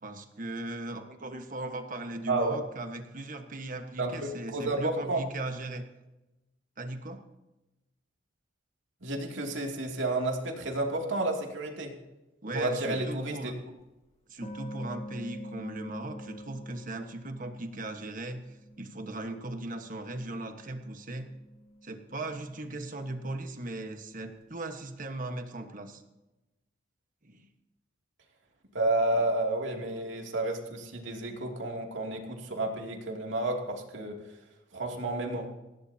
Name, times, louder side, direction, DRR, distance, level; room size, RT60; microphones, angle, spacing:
voice 1, 0.0-5.9 6.8-7.2 12.4-13.5 14.3-21.3 21.8-26.0 27.2-27.5, right 2 dB, 45° right, 6 dB, 1.4 m, -38 dB
voice 2, 2.3-2.6 4.0-5.2 9.0-11.9 12.5-13.5 28.7-34.2 34.7-35.5, right 2 dB, 80° right, 1 dB, 2.7 m, -31 dB
sound 1, 13.8-13.9 14.4-19.1 19.4-24.2, equal, 35° left, 1.8 m, -47 dB
19.5 x 16.0 x 2.9 m, 1.0 s
head